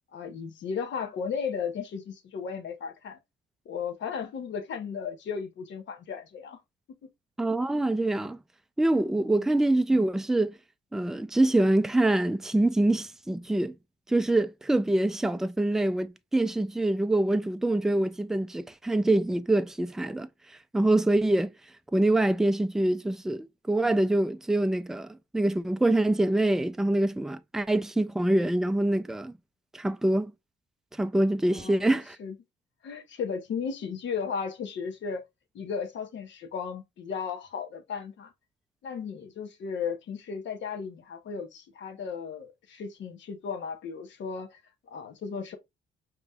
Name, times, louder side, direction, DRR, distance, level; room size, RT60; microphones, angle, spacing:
voice 1, 0.1-3.2 3.6-6.6 9.3-9.4 31.5-32.3 32.8-35.2 35.5-38.3 38.8-44.6 44.9-45.6, left 6 dB, 65° left, 1.1 m, -35 dB
voice 2, 7.4-8.4 8.8-10.6 10.9-13.8 14.1-20.3 20.7-21.5 21.9-29.3 29.7-30.3 31.0-32.2, right 1 dB, ahead, 0.3 m, -25 dB
5.2 x 3.0 x 2.3 m
cardioid pair, 90°, 20 cm